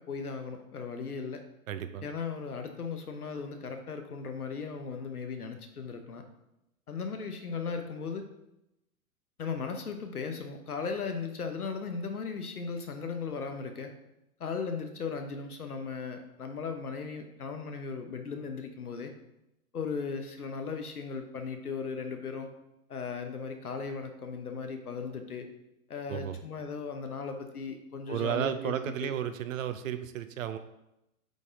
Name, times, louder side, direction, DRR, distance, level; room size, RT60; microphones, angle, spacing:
voice 1, 0.0-1.4 2.0-6.2 6.9-8.2 9.4-13.9 14.4-19.1 19.7-22.5 22.9-25.5 25.9-28.7 29.0-29.1, left 5 dB, 85° left, 6 dB, 1.2 m, -37 dB
voice 2, 1.7-2.1 26.1-26.4 28.1-30.6, right 10 dB, 65° right, 10 dB, 0.8 m, -33 dB
8.8 x 4.2 x 3.8 m, 0.89 s
figure-of-eight pair, 105°, 44 cm